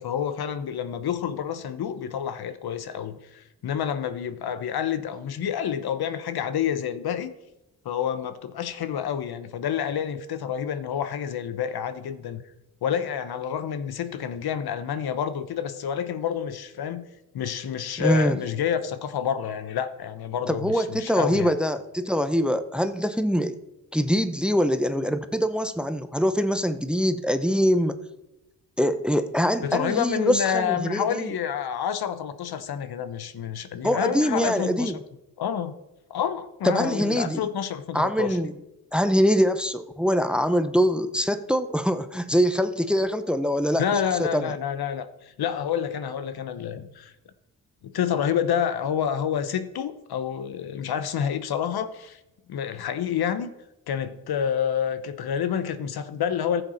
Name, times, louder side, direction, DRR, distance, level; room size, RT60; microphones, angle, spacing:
voice 1, 0.0-7.3 7.8-12.4 12.8-17.1 17.3-21.5 29.6-34.9 35.4-35.7 36.1-38.4 43.8-47.1 47.8-52.2 52.5-53.5 53.9-56.6, left 8 dB, 70° left, 12 dB, 0.9 m, -28 dB
voice 2, 18.0-18.4 20.5-23.6 23.9-28.0 28.8-31.3 33.8-35.0 36.6-37.4 37.9-38.5 38.9-43.8 44.2-44.5, equal, ahead, 10 dB, 0.7 m, -23 dB
14.5 x 6.9 x 4.3 m, 0.94 s
cardioid pair, 70°, 39 cm